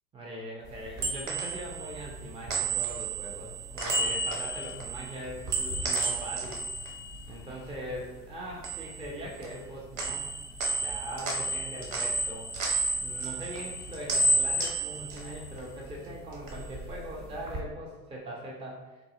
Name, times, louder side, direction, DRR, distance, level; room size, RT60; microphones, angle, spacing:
voice 1, 0.1-6.6 7.3-10.3 10.8-12.5 13.0-19.0, right 1 dB, 10° right, -2 dB, 0.5 m, -41 dB
sound 1, 0.7-8.0 8.3-9.7 10.0-16.0 16.3-17.6, right 2 dB, 40° right, 1.1 m, -32 dB
4.0 x 2.6 x 3.6 m, 1.1 s
hypercardioid pair, 85°, 48 cm